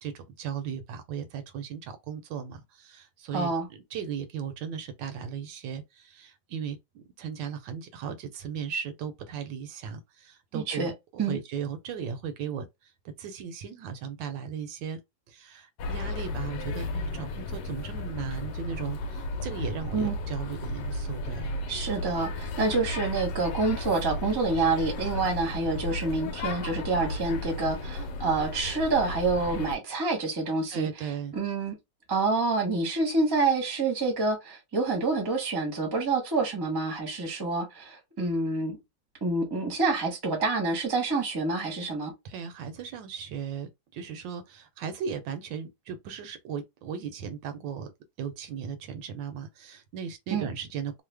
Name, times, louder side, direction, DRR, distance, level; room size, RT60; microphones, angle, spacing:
voice 1, 0.0-15.0 15.3-21.6 30.7-31.4 42.2-47.9 48.2-51.0, right 7 dB, 80° right, 1.3 m, -37 dB
voice 2, 3.3-3.7 10.5-10.9 11.2-11.4 19.9-20.2 21.7-30.9 31.3-31.7 32.1-38.8 39.2-42.1 50.3-50.5, right 3 dB, 20° right, 0.7 m, -27 dB
sound 1, 15.8-29.8, left 2 dB, 75° left, 1.2 m, -34 dB
3.2 x 2.0 x 3.3 m
omnidirectional pair, 2.0 m